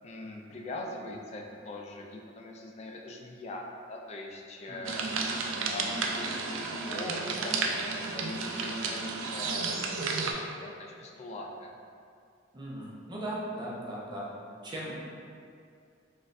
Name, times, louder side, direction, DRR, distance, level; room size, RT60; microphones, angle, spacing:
voice 1, 0.0-5.1 5.6-11.7, left 2 dB, 35° left, 1 dB, 0.3 m, -42 dB
voice 2, 4.7-5.0 12.5-14.4 14.6-15.0, right 1 dB, 25° right, -6 dB, 0.6 m, -38 dB
sound 1, 4.8-10.3, right 4 dB, 80° right, 0.3 m, -32 dB
3.9 x 2.5 x 2.5 m, 2.4 s
head